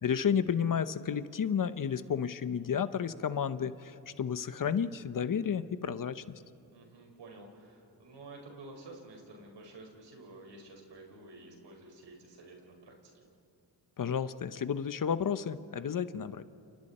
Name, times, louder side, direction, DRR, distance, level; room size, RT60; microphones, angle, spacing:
voice 1, 0.0-6.2 14.0-16.4, left 7 dB, 50° left, 13 dB, 1.0 m, -32 dB
voice 2, 6.7-13.1, right 2 dB, 80° right, 1 dB, 5.3 m, -51 dB
29.0 x 29.0 x 4.4 m, 2.6 s
cardioid pair, 80°, 42 cm